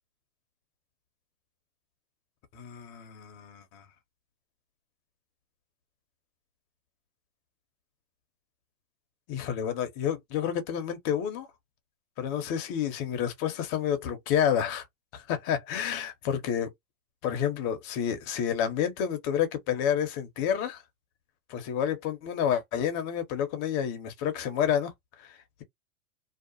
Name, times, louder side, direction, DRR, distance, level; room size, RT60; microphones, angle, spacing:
voice 1, 2.5-3.8 9.3-11.5 12.2-14.9 15.1-16.7 17.2-20.8 21.5-24.9 25.2-25.6, left 9 dB, 30° left, 0.8 m, -29 dB
2.8 x 2.4 x 2.3 m
hypercardioid pair, 145°, 42 cm